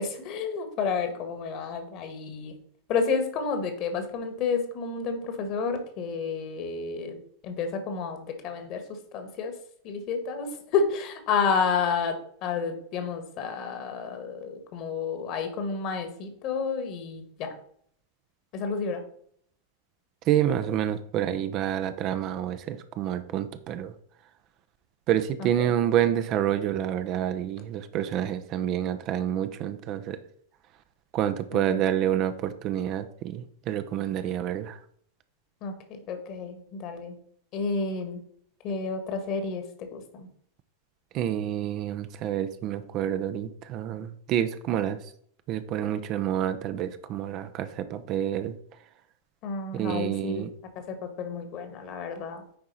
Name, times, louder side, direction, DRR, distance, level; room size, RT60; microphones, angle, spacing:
voice 1, 0.0-2.6 2.9-9.5 9.8-17.5 18.5-19.0 25.4-25.7 31.5-31.8 35.6-37.2 37.5-38.2 38.6-40.3 49.4-50.5 50.7-52.4, left 5 dB, 40° left, 7 dB, 1.6 m, -30 dB
voice 2, 20.2-23.9 25.1-30.2 31.1-34.8 41.1-45.0 45.5-48.5 49.7-50.5, right 11 dB, 35° right, 10 dB, 0.6 m, -28 dB
9.5 x 4.8 x 4.1 m, 0.63 s
figure-of-eight pair, 90°, 0 cm